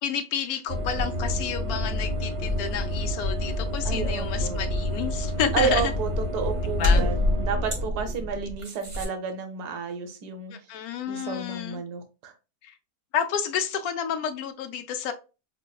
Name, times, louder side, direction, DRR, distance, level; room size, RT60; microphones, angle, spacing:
voice 1, 0.0-5.9 6.6-7.0 10.5-11.8 12.6-12.7 13.1-15.1, left 8 dB, 70° left, 1.0 m, -30 dB
sound 1, 0.7-9.1, left 1 dB, 40° right, 0.4 m, -27 dB
voice 2, 3.8-4.6 5.5-10.5 11.1-12.3, right 5 dB, 70° right, 1.3 m, -31 dB
5.8 x 2.0 x 2.2 m
omnidirectional pair, 1.8 m